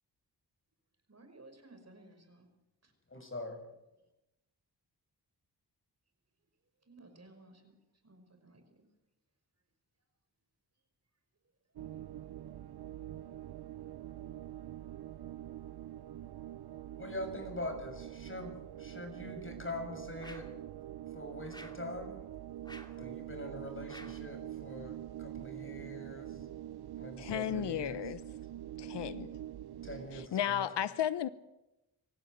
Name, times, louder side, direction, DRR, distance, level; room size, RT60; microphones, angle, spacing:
voice 1, 1.1-2.5 2.8-2.9 6.8-7.7 8.0-8.9, right 2 dB, 40° right, 5.6 m, -57 dB
voice 2, 3.1-3.6 17.0-20.5 21.1-22.2 23.0-26.4 27.0-28.1 29.8-30.6, left 2 dB, 30° left, 6.8 m, -43 dB
sound 1, 11.8-30.3, right 12 dB, 65° right, 0.7 m, -45 dB
sound 2, 20.2-20.6 21.5-21.9 22.6-23.0 23.9-24.3, left 1 dB, 10° left, 2.6 m, -52 dB
voice 3, 27.2-28.2 28.8-29.3 30.1-31.3, left 10 dB, 85° left, 0.9 m, -34 dB
25.5 x 15.0 x 8.1 m
cardioid pair, 60°, 41 cm